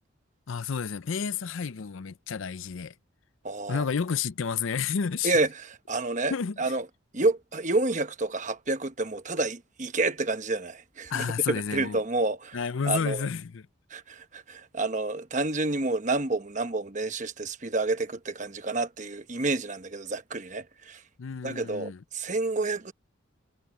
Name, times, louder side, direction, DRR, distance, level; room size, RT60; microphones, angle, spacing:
voice 1, 0.5-2.9 3.7-5.3 6.3-6.7 11.1-12.0 12.5-13.6 21.2-22.0, left 6 dB, 75° left, 0.5 m, -30 dB
voice 2, 3.4-3.8 5.2-6.9 7.1-12.6 12.8-13.3 13.9-21.0 21.4-22.9, right 2 dB, 35° right, 1.1 m, -29 dB
head